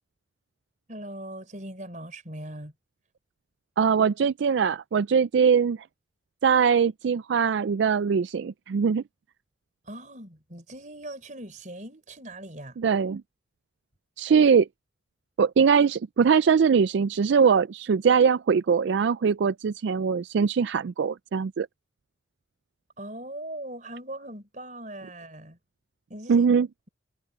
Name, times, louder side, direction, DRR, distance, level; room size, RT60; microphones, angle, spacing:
voice 1, 0.9-2.7 9.8-12.8 23.0-25.6 26.1-26.5, right 1 dB, 40° right, 4.7 m, -40 dB
voice 2, 3.8-5.8 6.4-9.0 12.8-13.2 14.2-14.7 15.4-21.7 26.3-26.7, right 6 dB, 70° right, 0.4 m, -22 dB
head